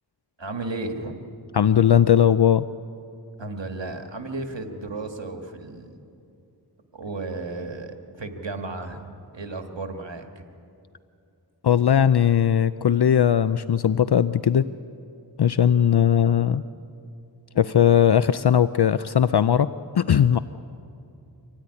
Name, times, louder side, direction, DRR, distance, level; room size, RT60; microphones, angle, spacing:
voice 1, 0.4-1.2 3.4-6.0 6.9-10.4, right 2 dB, 90° right, 5 dB, 1.7 m, -34 dB
voice 2, 1.5-2.6 11.6-14.6 15.4-16.6 17.6-19.7 19.9-20.4, left 9 dB, 65° left, 14 dB, 0.5 m, -18 dB
25.5 x 17.0 x 9.8 m, 2.6 s
wide cardioid pair, 40°, 43 cm